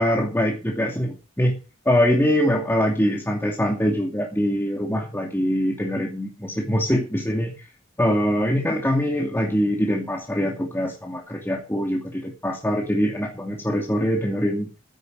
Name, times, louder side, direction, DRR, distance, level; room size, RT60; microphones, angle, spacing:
voice 1, 0.0-1.6 1.9-7.7 8.0-14.7, equal, 10° left, 1 dB, 2.6 m, -23 dB
15.0 x 10.5 x 5.3 m, 0.32 s
head